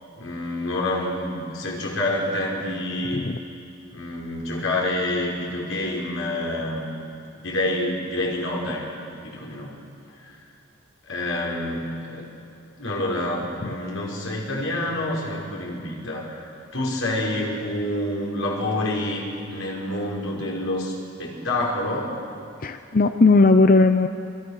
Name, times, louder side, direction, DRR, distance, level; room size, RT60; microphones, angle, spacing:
voice 1, 0.2-3.2 3.9-6.9 7.4-8.8 9.2-9.7 10.2-10.4 11.1-12.3 12.8-22.1, left 1 dB, 90° left, -2 dB, 5.4 m, -27 dB
voice 2, 22.6-24.1, left 3 dB, 45° left, 8 dB, 0.7 m, -17 dB
28.5 x 23.5 x 6.5 m, 2.5 s
head